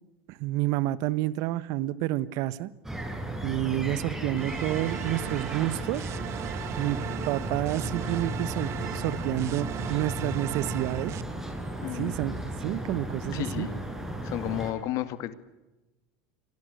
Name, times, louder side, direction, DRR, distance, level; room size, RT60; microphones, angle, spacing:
voice 1, 0.3-2.7 3.4-6.1 6.8-11.2 11.9-13.7, right 15 dB, 60° right, 17 dB, 1.3 m, -29 dB
sound 1, 2.8-14.7, right 1 dB, 5° right, 7.8 m, -35 dB
sound 2, 4.4-11.2, right 13 dB, 45° right, 1.1 m, -37 dB
voice 2, 11.8-12.2 13.3-13.8 14.2-15.3, left 14 dB, 55° left, 12 dB, 2.2 m, -32 dB
29.5 x 24.5 x 6.7 m, 1.0 s
supercardioid pair, 105°, 7 cm